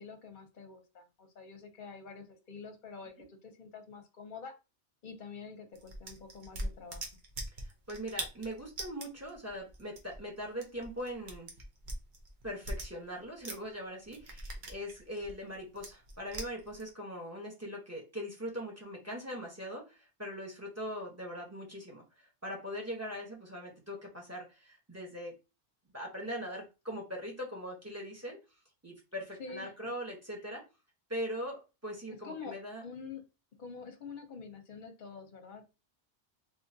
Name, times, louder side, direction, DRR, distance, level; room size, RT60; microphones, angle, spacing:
voice 1, 0.0-4.5 5.0-7.1 29.4-29.7 32.1-32.6 32.8-33.2 33.6-35.6, left 5 dB, 50° left, 5 dB, 0.8 m, -47 dB
sound 1, 5.7-13.7 14.0-16.9, right 1 dB, 50° right, 0.8 m, -42 dB
voice 2, 7.6-11.5 12.4-25.3 25.9-28.4 28.8-30.6 31.1-32.8, equal, 15° right, -1 dB, 1.0 m, -41 dB
3.6 x 2.7 x 2.6 m, 0.29 s
omnidirectional pair, 1.2 m